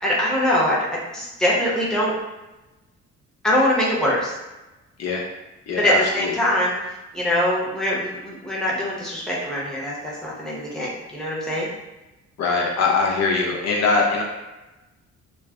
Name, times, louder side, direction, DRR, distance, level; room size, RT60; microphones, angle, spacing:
voice 1, 0.0-2.1 3.4-4.3 5.8-6.7 7.1-11.7, equal, ahead, -6 dB, 0.8 m, -23 dB
voice 2, 5.7-6.4 12.4-14.2, left 4 dB, 60° left, -1 dB, 0.5 m, -22 dB
3.1 x 2.1 x 2.4 m, 1.0 s
cardioid pair, 90°, 30 cm